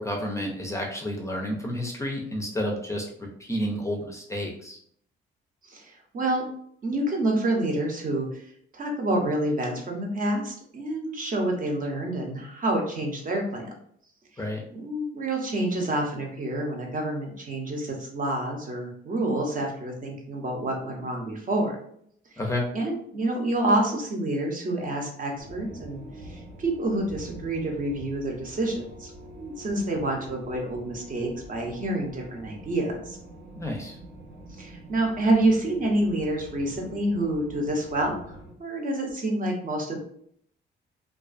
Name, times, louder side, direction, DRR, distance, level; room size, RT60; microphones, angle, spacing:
voice 1, 0.0-4.8 14.4-14.6 22.4-22.6 33.5-34.0, left 1 dB, 15° left, 0 dB, 0.5 m, -30 dB
voice 2, 5.7-6.4 6.8-13.7 14.3-14.4 14.7-21.8 22.3-22.4 22.7-29.1 29.4-33.2 34.6-40.0, right 1 dB, 45° right, 1 dB, 0.7 m, -28 dB
sound 1, 25.4-38.5, right 1 dB, 70° right, 1.0 m, -45 dB
2.3 x 2.3 x 2.4 m, 0.66 s
cardioid pair, 90°, 20 cm